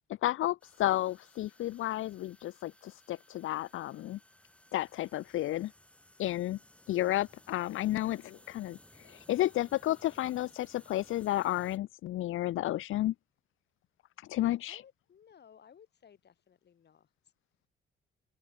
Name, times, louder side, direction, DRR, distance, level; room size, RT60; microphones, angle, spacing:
voice 1, 0.2-4.2 4.7-5.7 6.2-6.6 6.9-13.1 14.2-14.8, left 14 dB, 75° left, 0.5 m, -32 dB
sound 1, 0.6-11.8, left 1 dB, 5° left, 3.9 m, -60 dB
voice 2, 14.7-17.3, left 8 dB, 55° left, 5.8 m, -59 dB
open air
cardioid pair, 120°, 21 cm